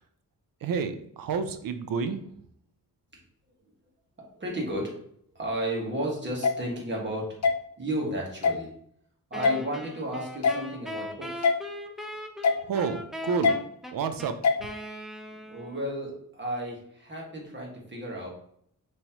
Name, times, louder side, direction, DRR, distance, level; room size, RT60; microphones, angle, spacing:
voice 1, 0.6-2.3 12.6-13.6 13.9-14.4, right 5 dB, 80° right, 9 dB, 0.5 m, -29 dB
voice 2, 4.3-5.0 5.3-7.4 7.8-8.7 9.3-11.5 15.3-18.3, right 1 dB, 35° right, -2 dB, 1.6 m, -33 dB
sound 1, 6.4-6.5 7.4-7.5 8.4-8.6 9.4-9.5 10.4-10.6 11.4-11.6 12.4-12.6 13.4-13.6 14.4-14.6, left 4 dB, 55° left, 0.6 m, -22 dB
Wind instrument woodwind instrument, 9.3-15.9, equal, ahead, 0.5 m, -39 dB
5.4 x 3.1 x 2.9 m, 0.67 s
wide cardioid pair, 120°, 34 cm